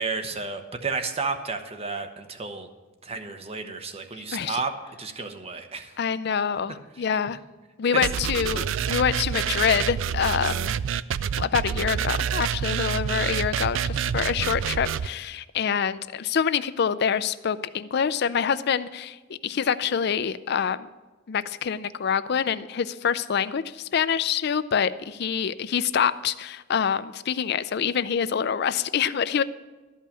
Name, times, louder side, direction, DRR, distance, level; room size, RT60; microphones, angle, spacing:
voice 1, 0.0-2.7 3.0-4.7 5.0-6.0, right 4 dB, 30° right, 6 dB, 0.9 m, -32 dB
voice 2, 6.0-7.4 7.8-10.8 11.4-20.9 21.3-29.4, left 7 dB, 55° left, 15 dB, 0.4 m, -26 dB
sound 1, 8.0-15.1, right 8 dB, 80° right, 0.4 m, -27 dB
13.0 x 5.5 x 8.5 m, 1.2 s
head